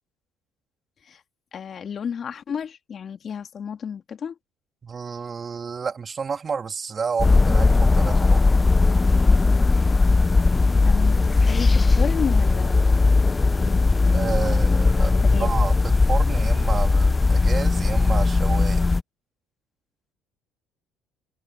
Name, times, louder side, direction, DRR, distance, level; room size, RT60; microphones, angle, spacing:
voice 1, 1.5-4.3 10.8-12.8 13.2-15.5, left 7 dB, 45° left, 2.4 m, -33 dB
voice 2, 4.8-8.7 14.1-18.9, right 5 dB, 35° right, 2.3 m, -30 dB
sound 1, 7.2-19.0, left 3 dB, 20° left, 0.5 m, -18 dB
supercardioid pair, 75°, 0 cm